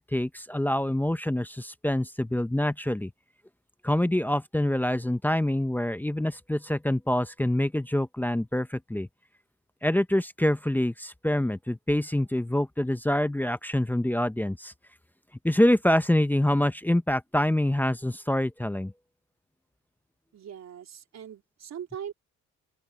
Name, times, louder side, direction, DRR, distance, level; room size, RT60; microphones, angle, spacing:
voice 1, 0.0-3.1 3.8-9.1 9.8-14.7 15.4-18.9, left 1 dB, 5° left, 0.7 m, -26 dB
voice 2, 20.3-22.1, right 8 dB, 60° right, 3.5 m, -40 dB
open air
cardioid pair, 90°, 30 cm